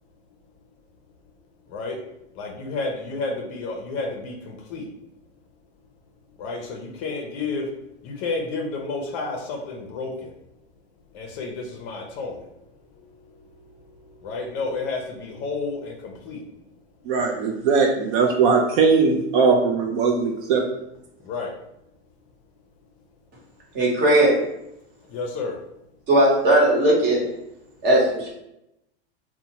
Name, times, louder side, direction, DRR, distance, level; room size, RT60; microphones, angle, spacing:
voice 1, 2.4-4.8 6.4-7.7 8.0-10.3 11.1-12.4 14.2-16.4 21.2-21.5 25.1-25.6, left 3 dB, 40° left, 1 dB, 0.5 m, -30 dB
voice 2, 17.1-20.6, right 5 dB, 55° right, 2 dB, 0.4 m, -20 dB
voice 3, 23.7-24.3 26.1-27.2 27.8-28.3, right 1 dB, 30° right, -3 dB, 0.9 m, -18 dB
2.6 x 2.1 x 2.8 m, 0.84 s
supercardioid pair, 130°, 33 cm